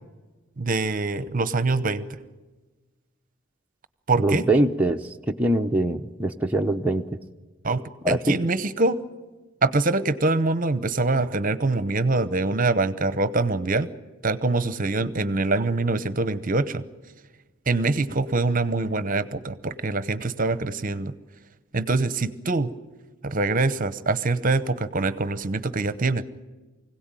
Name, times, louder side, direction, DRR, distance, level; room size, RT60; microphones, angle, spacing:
voice 1, 0.6-2.2 4.1-4.5 7.6-9.0 9.6-13.9 14.2-16.8 17.7-21.1 21.7-22.7 23.2-26.2, right 3 dB, 40° right, 14 dB, 0.9 m, -24 dB
voice 2, 4.2-7.1 8.0-8.4, right 1 dB, 5° right, 1 dB, 0.7 m, -23 dB
24.5 x 17.0 x 9.1 m, 1.3 s
head